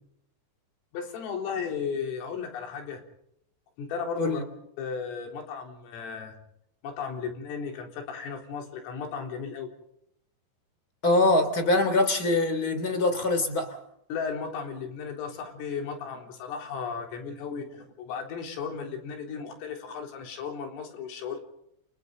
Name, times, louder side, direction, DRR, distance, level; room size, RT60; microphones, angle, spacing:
voice 1, 0.9-3.0 3.8-4.4 4.8-6.4 6.8-9.7 14.1-21.4, left 6 dB, 90° left, 3 dB, 6.3 m, -35 dB
voice 2, 11.0-13.8, left 2 dB, 25° left, 9 dB, 2.7 m, -23 dB
29.5 x 28.0 x 3.9 m, 0.75 s
omnidirectional pair, 5.7 m